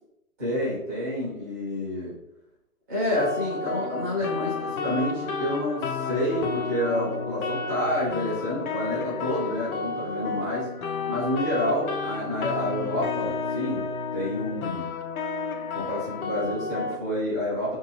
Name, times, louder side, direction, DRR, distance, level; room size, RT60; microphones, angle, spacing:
voice 1, 0.4-2.2 2.9-10.7 11.1-13.8 14.1-14.9 15.7-17.8, left 1 dB, 15° right, -9 dB, 0.6 m, -28 dB
sound 1, 3.1-17.0, left 4 dB, 70° left, 0.5 m, -31 dB
2.7 x 2.4 x 2.9 m, 0.84 s
hypercardioid pair, 150°, 44 cm